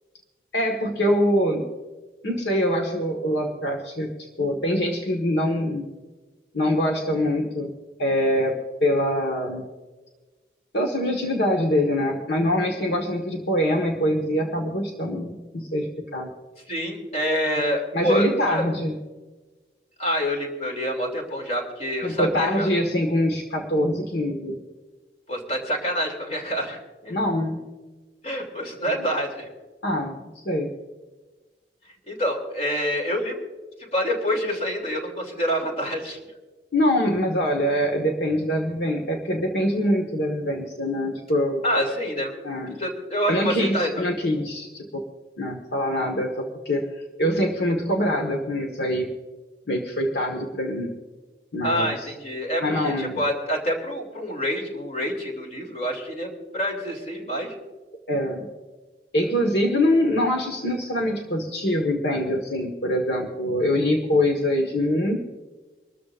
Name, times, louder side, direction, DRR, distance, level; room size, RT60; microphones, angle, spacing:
voice 1, 0.5-1.6 2.2-4.1 4.4-5.8 6.5-7.7 8.0-9.6 10.7-16.3 17.6-17.7 17.9-19.0 22.0-24.6 27.1-27.6 28.9-29.1 29.8-30.2 30.4-30.7 36.7-41.9 42.4-42.8 43.3-45.0 45.4-46.8 47.2-49.1 49.7-50.9 51.5-52.1 52.6-53.2 58.1-58.5 59.1-65.2, equal, 70° left, 2 dB, 1.6 m, -24 dB
voice 2, 16.7-18.3 18.5-18.6 20.0-22.7 25.3-26.8 27.0-27.1 28.2-29.5 32.1-33.4 33.9-36.2 41.6-42.3 42.8-43.9 51.6-57.5, equal, 40° left, 2 dB, 3.1 m, -27 dB
25.5 x 13.5 x 2.6 m, 1.3 s
head